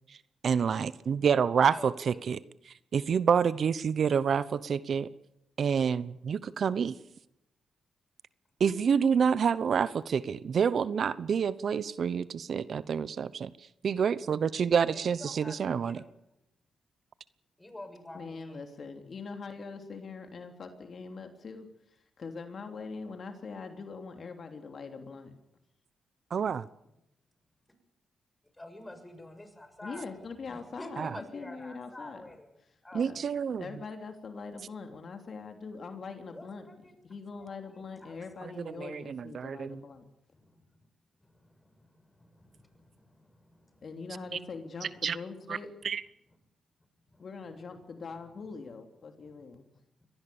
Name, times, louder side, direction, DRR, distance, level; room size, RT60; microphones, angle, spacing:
voice 1, 0.4-2.4 2.9-5.1 5.6-7.0 8.6-13.5 13.8-16.0 26.3-26.7 31.0-31.1 32.9-33.6 38.8-39.8 45.0-45.2 45.5-45.6 45.8-46.0, right 7 dB, 65° right, 17 dB, 0.9 m, -28 dB
voice 2, 1.7-2.3 14.9-16.0 17.6-18.6 28.5-30.2 30.5-32.5 32.8-33.3 36.3-36.9 37.4-38.8 40.3-40.7 41.2-43.9 47.1-47.2 49.2-49.3, left 1 dB, 15° left, 8 dB, 6.7 m, -49 dB
voice 3, 18.1-25.3 29.8-32.3 32.9-33.2 33.6-40.1 43.8-45.7 47.2-49.7, left 4 dB, 55° left, 5 dB, 3.1 m, -43 dB
23.5 x 19.0 x 7.1 m, 0.83 s
cardioid pair, 65°, 0 cm